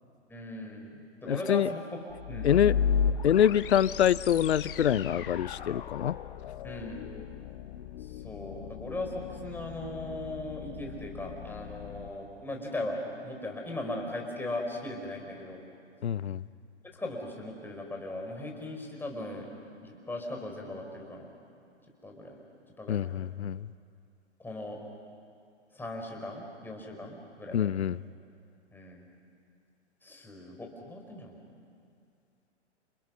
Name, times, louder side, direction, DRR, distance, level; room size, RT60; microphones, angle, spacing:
voice 1, 0.3-1.8 2.3-2.8 6.6-7.1 8.0-15.6 17.0-19.5 19.8-21.3 22.0-22.4 22.8-23.0 24.4-24.8 25.7-27.7 28.7-29.0 30.0-31.3, left 1 dB, 5° left, 0 dB, 4.8 m, -38 dB
voice 2, 1.3-1.7 2.4-2.8 3.2-6.2 16.0-16.4 22.9-23.7 27.5-28.0, left 9 dB, 65° left, 20 dB, 0.7 m, -25 dB
sound 1, 2.1-12.1, left 7 dB, 50° left, 1.5 m, -35 dB
29.5 x 28.0 x 6.3 m, 2.4 s
figure-of-eight pair, 115°, 35 cm